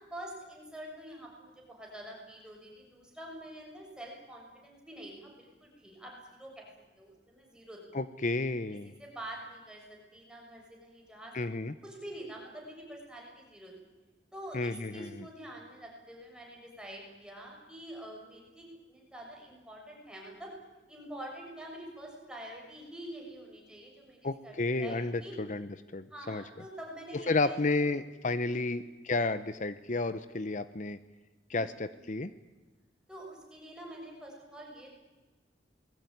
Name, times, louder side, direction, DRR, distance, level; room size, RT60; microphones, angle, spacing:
voice 1, 0.1-6.7 7.0-7.8 9.0-11.3 11.8-13.7 14.3-20.5 20.9-25.3 26.1-27.9 28.5-28.8 31.5-32.0 33.1-34.9, right 1 dB, 5° right, -1 dB, 6.7 m, -46 dB
voice 2, 7.9-8.9 11.3-11.7 14.5-15.2 24.2-26.4 27.1-31.0 31.5-32.3, left 3 dB, 45° left, 13 dB, 0.8 m, -32 dB
27.5 x 20.5 x 9.4 m, 1.2 s
head